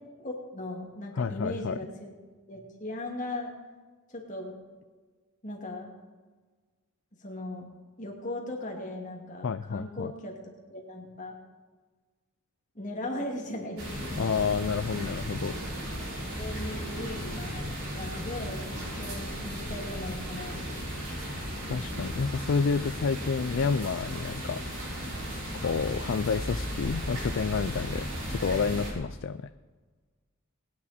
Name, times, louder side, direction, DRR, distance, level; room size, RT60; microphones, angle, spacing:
voice 1, 0.2-2.1 2.5-3.5 4.1-4.6 5.4-5.9 7.2-7.7 8.0-10.3 10.7-11.4 12.7-14.4 16.4-17.7 17.9-20.8, left 1 dB, 35° left, 0 dB, 2.4 m, -38 dB
voice 2, 1.2-1.8 9.4-10.1 14.2-15.6 21.7-24.6 25.5-29.5, left 5 dB, 60° left, 11 dB, 0.4 m, -29 dB
sound 1, 13.8-28.9, equal, 80° right, 5.4 m, -35 dB
21.0 x 9.7 x 4.3 m, 1.4 s
head